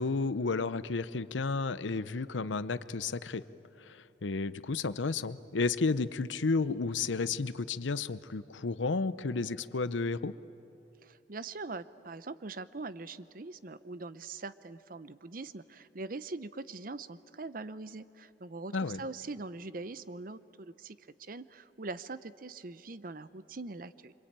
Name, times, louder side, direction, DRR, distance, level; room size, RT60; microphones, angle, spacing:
voice 1, 0.0-3.4 3.8-10.3 18.7-19.0, left 4 dB, 90° left, 15 dB, 0.7 m, -32 dB
voice 2, 11.0-24.1, right 3 dB, 50° right, 14 dB, 0.7 m, -42 dB
26.5 x 25.5 x 8.9 m, 2.8 s
head